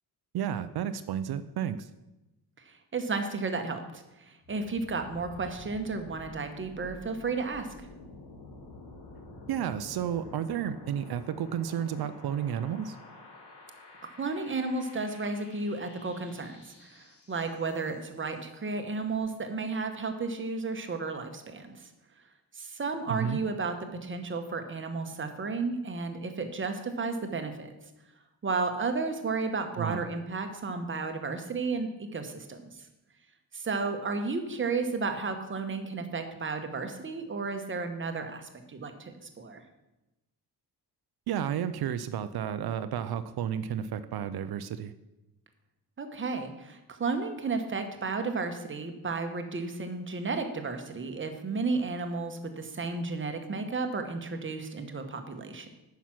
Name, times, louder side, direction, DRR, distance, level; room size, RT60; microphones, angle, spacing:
voice 1, 0.3-1.9 9.5-13.0 23.1-23.4 29.8-30.1 41.3-44.9, right 9 dB, 65° right, 12 dB, 0.5 m, -32 dB
voice 2, 2.6-7.7 14.2-21.9 22.5-23.7 24.0-27.7 28.4-32.9 33.5-39.6 46.0-55.7, right 4 dB, 30° right, 6 dB, 1.0 m, -33 dB
sound 1, 4.4-18.2, left 2 dB, 80° left, 2.0 m, -49 dB
9.3 x 5.8 x 5.9 m, 0.99 s
wide cardioid pair, 145°, 40 cm